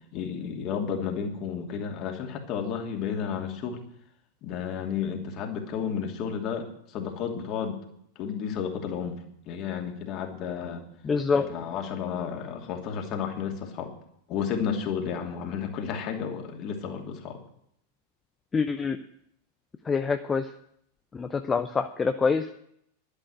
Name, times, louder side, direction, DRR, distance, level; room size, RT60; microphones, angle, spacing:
voice 1, 0.1-3.8 4.4-7.8 8.2-10.8 11.3-13.9 14.3-17.4, left 7 dB, 40° left, 2 dB, 2.8 m, -32 dB
voice 2, 11.0-11.5 18.5-19.0 19.9-20.4 21.1-22.5, left 5 dB, 15° left, 7 dB, 0.7 m, -25 dB
11.5 x 10.0 x 7.9 m, 0.72 s
figure-of-eight pair, 90°, 0 cm